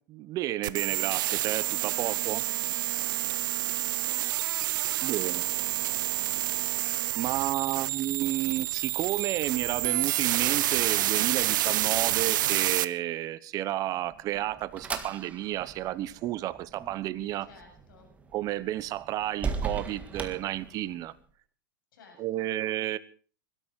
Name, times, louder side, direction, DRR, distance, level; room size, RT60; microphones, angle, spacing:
voice 1, 0.1-2.4 5.0-5.4 7.2-17.5 18.3-21.1 22.2-23.0, right 14 dB, 30° right, 1.0 m, -31 dB
sound 1, 0.6-12.8, right 15 dB, 65° right, 0.8 m, -28 dB
voice 2, 1.8-3.9 4.7-6.4 6.8-7.9 17.4-18.1 21.9-22.5, left 4 dB, 70° left, 7.6 m, -55 dB
sound 2, 13.8-21.2, right 5 dB, 10° right, 1.8 m, -39 dB
21.5 x 13.0 x 4.7 m
hypercardioid pair, 135°, 11 cm